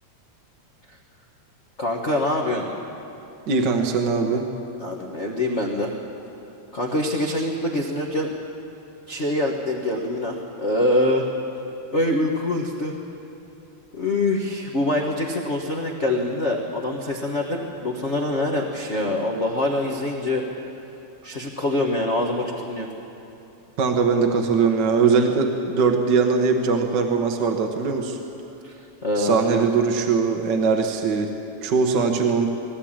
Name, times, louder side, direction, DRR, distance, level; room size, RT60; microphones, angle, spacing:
voice 1, 1.8-2.7 4.8-5.9 6.7-8.3 9.1-11.3 11.9-12.9 14.0-20.4 21.2-22.9 28.6-28.7 29.0-29.7, left 1 dB, 40° left, 0 dB, 1.0 m, -24 dB
voice 2, 3.5-4.5 23.8-28.2 29.2-31.3 31.6-32.5, right 5 dB, 55° right, 3 dB, 1.3 m, -21 dB
20.0 x 16.5 x 8.8 m, 2.9 s
omnidirectional pair, 3.4 m